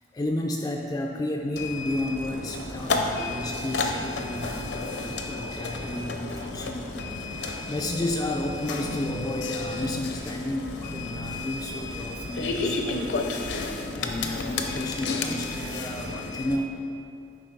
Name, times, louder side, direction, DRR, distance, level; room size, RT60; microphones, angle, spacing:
voice 1, 0.1-6.9 7.2-13.1 13.5-13.7 13.9-16.8, left 1 dB, 20° left, 1 dB, 0.3 m, -32 dB
sound 1, 1.6-16.6, left 3 dB, 65° left, 0.6 m, -32 dB
sound 2, 2.1-13.6, equal, 50° right, 1.0 m, -43 dB
9.9 x 3.9 x 4.0 m, 2.5 s
head